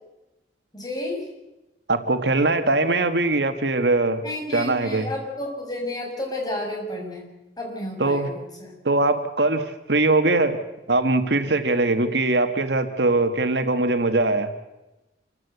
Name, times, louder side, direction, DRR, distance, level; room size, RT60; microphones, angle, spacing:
voice 1, 0.7-1.2 4.2-7.3 7.6-8.7, left 1 dB, 25° left, 0 dB, 6.7 m, -31 dB
voice 2, 1.9-4.2 4.5-5.1 8.0-8.3 8.9-10.6 10.9-14.5, right 2 dB, 70° right, 9 dB, 1.7 m, -21 dB
27.5 x 15.5 x 8.1 m, 1.0 s
head